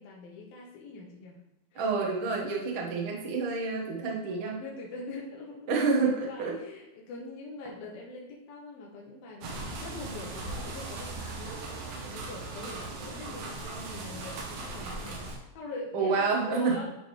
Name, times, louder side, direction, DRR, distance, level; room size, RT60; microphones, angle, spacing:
voice 1, 0.0-1.4 1.7-1.8 4.6-16.9, left 3 dB, 85° left, -2 dB, 2.9 m, -43 dB
voice 2, 1.7-4.6 5.7-6.5 15.9-16.8, right 4 dB, 55° right, -2 dB, 1.5 m, -28 dB
sound 1, 9.4-15.4, right 3 dB, 75° right, 2.6 m, -38 dB
11.0 x 3.8 x 3.2 m, 0.95 s
omnidirectional pair, 4.2 m